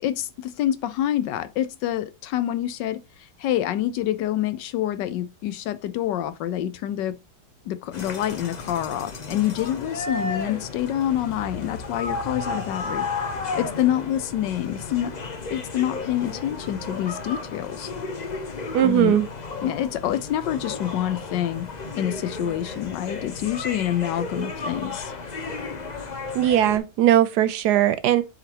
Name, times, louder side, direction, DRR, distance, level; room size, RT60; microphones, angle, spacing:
voice 1, 0.0-3.0 3.4-7.2 7.6-13.1 13.6-15.1 15.5-17.9 18.8-19.2 19.6-21.7 22.0-25.1, left 12 dB, 80° left, 1.4 m, -27 dB
sound 1, 7.9-26.8, left 3 dB, 35° left, 0.7 m, -33 dB
voice 2, 18.7-19.3 26.3-28.2, right 12 dB, 70° right, 1.2 m, -19 dB
7.8 x 4.4 x 2.9 m
omnidirectional pair, 1.9 m